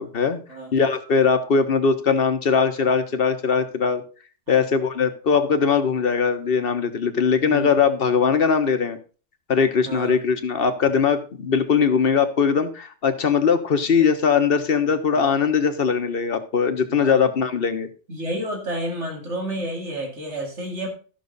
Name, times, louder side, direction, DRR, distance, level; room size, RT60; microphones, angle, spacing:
voice 1, 0.0-0.4 0.7-4.0 4.5-9.0 9.5-17.9, left 6 dB, 55° left, 8 dB, 1.3 m, -20 dB
voice 2, 7.4-7.7 9.8-10.2 15.1-15.3 16.9-17.3 18.1-20.9, right 1 dB, 75° right, 2 dB, 2.6 m, -30 dB
13.5 x 6.1 x 4.0 m, 0.36 s
omnidirectional pair, 1.2 m